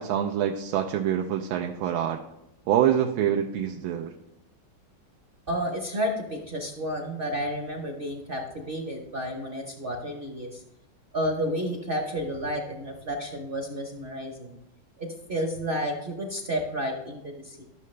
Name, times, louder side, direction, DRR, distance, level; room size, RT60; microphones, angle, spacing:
voice 1, 0.0-2.2 2.7-4.1, right 10 dB, 90° right, 3 dB, 1.4 m, -25 dB
voice 2, 5.5-10.6 11.1-14.6 15.0-17.6, equal, 45° right, 1 dB, 0.7 m, -31 dB
12.0 x 6.6 x 3.2 m, 0.86 s
omnidirectional pair, 2.2 m